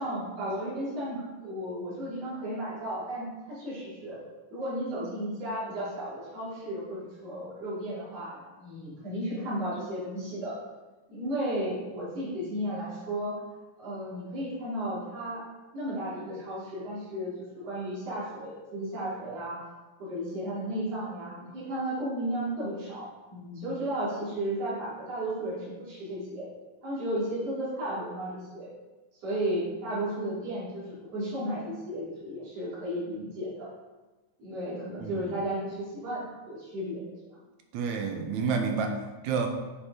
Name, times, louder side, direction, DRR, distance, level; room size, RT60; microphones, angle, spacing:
voice 1, 0.0-4.2 4.5-10.6 11.1-13.4 13.8-15.4 15.7-19.6 20.0-26.5 26.8-28.7 29.2-33.7 34.4-37.0, right 1 dB, 55° right, -11 dB, 4.2 m, -34 dB
voice 2, 37.7-39.5, right 5 dB, 80° right, 4 dB, 2.1 m, -29 dB
9.3 x 6.5 x 3.7 m, 1.2 s
omnidirectional pair, 3.4 m